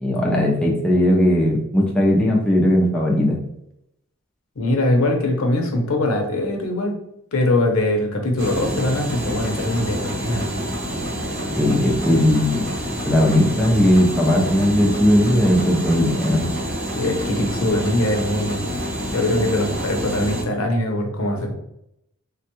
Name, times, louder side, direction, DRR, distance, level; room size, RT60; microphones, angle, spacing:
voice 1, 0.0-3.4 11.6-12.7 13.1-16.4, equal, 5° left, -4 dB, 0.4 m, -18 dB
voice 2, 4.6-7.0 7.3-10.5 17.0-18.8 19.1-21.5, left 1 dB, 70° left, 3 dB, 0.6 m, -22 dB
sound 1, 8.4-20.4, equal, 45° right, 0.8 m, -27 dB
3.3 x 2.2 x 2.9 m, 0.81 s
head